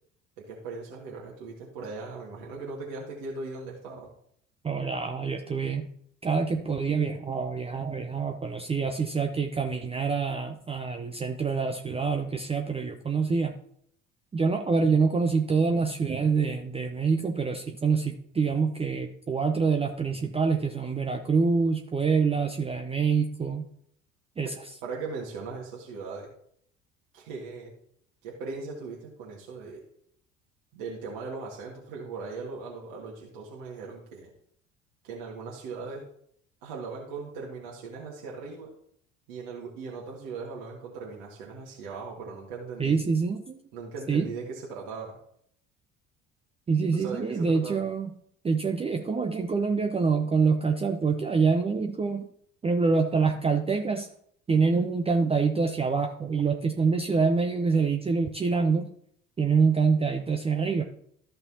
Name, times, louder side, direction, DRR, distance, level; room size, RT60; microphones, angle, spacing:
voice 1, 0.4-4.1 24.4-24.5 24.8-26.3 27.1-27.7 28.2-29.8 30.7-34.3 35.0-36.0 36.6-38.7 39.3-43.0 43.7-45.1 46.9-47.8, right 4 dB, 55° right, -3 dB, 1.8 m, -39 dB
voice 2, 4.6-5.9 6.2-13.5 14.3-23.6 24.4-24.5 42.8-43.6 44.1-44.3 46.7-48.1 48.4-52.2 52.6-54.1 54.5-58.9 59.4-60.8, right 5 dB, 15° right, 4 dB, 0.6 m, -26 dB
13.5 x 5.4 x 2.8 m, 0.67 s
figure-of-eight pair, 60°, 39 cm